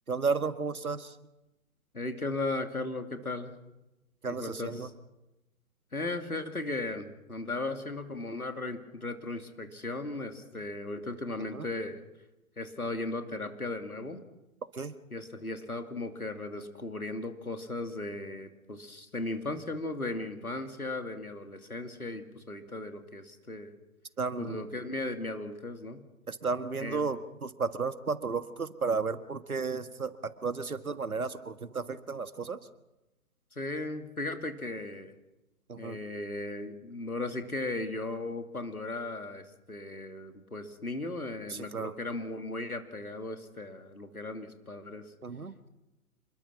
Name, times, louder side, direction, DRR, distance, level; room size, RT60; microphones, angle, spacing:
voice 1, 0.1-1.1 4.2-4.9 11.5-11.6 14.8-14.9 24.2-24.6 26.3-32.6 35.7-36.0 41.7-41.9 45.2-45.5, right 4 dB, 80° right, 12 dB, 1.7 m, -33 dB
voice 2, 1.9-3.5 4.3-4.9 5.9-12.0 12.6-14.2 15.1-23.7 24.4-26.0 26.8-27.0 33.5-35.1 35.8-45.1, left 2 dB, 90° left, 7 dB, 2.6 m, -36 dB
27.0 x 22.0 x 6.1 m, 0.97 s
figure-of-eight pair, 120°, 42 cm